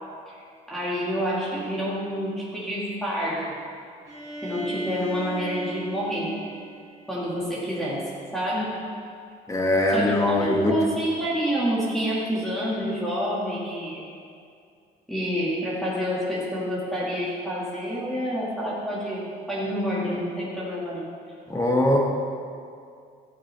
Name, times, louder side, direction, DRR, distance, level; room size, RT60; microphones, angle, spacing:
voice 1, 0.3-3.6 4.4-6.4 7.1-8.8 9.9-14.1 15.1-21.1, equal, ahead, -8 dB, 2.0 m, -28 dB
Bowed string instrument, 4.1-7.8, right 2 dB, 20° right, 2.6 m, -38 dB
voice 2, 9.5-10.7 21.5-22.0, left 1 dB, 20° left, -1 dB, 1.7 m, -21 dB
14.0 x 8.8 x 3.4 m, 2.3 s
cardioid pair, 110°, 17 cm